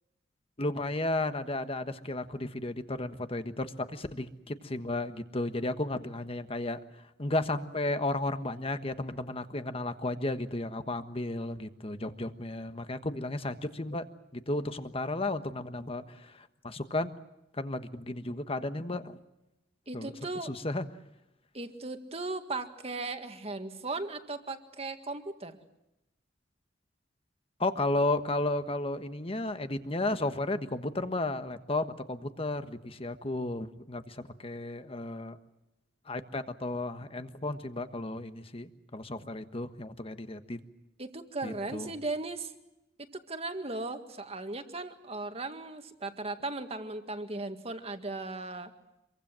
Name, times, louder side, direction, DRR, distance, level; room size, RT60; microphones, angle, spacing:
voice 1, 0.6-14.0 14.3-17.1 17.5-19.2 19.9-20.1 20.4-20.8 27.6-35.4 36.1-40.6 41.4-41.9, left 2 dB, 30° left, 9 dB, 1.3 m, -33 dB
voice 2, 19.9-20.5 21.5-25.6 41.0-42.5 43.1-48.7, right 3 dB, 35° right, 7 dB, 1.9 m, -37 dB
26.0 x 23.5 x 7.6 m, 0.91 s
head